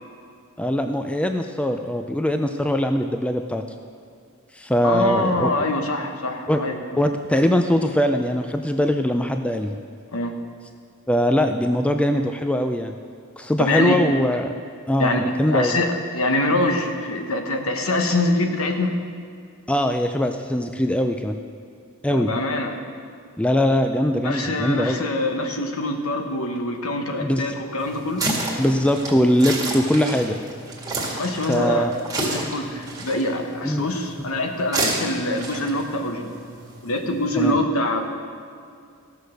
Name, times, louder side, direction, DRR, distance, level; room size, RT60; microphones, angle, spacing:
voice 1, 0.6-3.6 4.6-5.5 6.5-6.6 7.0-9.8 11.1-13.0 13.4-14.5 14.9-15.8 19.7-21.4 22.0-22.3 23.4-25.0 27.2-27.4 28.6-30.4 31.5-31.9 33.6-33.9 37.4-37.6, equal, 5° left, 6 dB, 0.4 m, -21 dB
voice 2, 4.8-6.8 10.1-10.3 13.6-14.0 15.0-18.9 22.1-22.8 24.2-28.3 31.1-31.9 32.2-36.3 36.8-38.1, left 2 dB, 65° left, 4 dB, 1.2 m, -24 dB
sound 1, 27.8-37.5, right 2 dB, 15° right, 1.9 m, -31 dB
15.5 x 6.5 x 6.4 m, 2.3 s
head